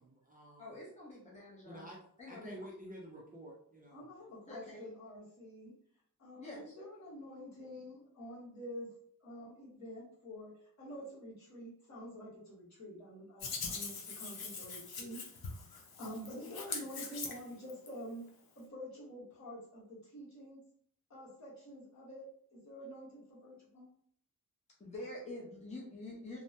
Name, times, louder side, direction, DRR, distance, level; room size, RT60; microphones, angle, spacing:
voice 1, 0.0-0.8 1.6-2.0 2.3-4.1, equal, 25° right, -3 dB, 0.4 m, -50 dB
voice 2, 0.6-1.9 2.2-2.5 4.5-4.9 6.4-6.7 24.8-26.4, left 1 dB, 20° left, -4 dB, 0.7 m, -47 dB
voice 3, 3.9-5.7 6.2-8.9 9.2-15.2 15.7-18.3 18.5-20.6 21.1-23.9, equal, 50° left, -7 dB, 1.3 m, -48 dB
Hands, 13.4-17.9, left 4 dB, 85° left, 0.7 m, -42 dB
3.2 x 2.1 x 2.7 m, 0.63 s
wide cardioid pair, 170°, 36 cm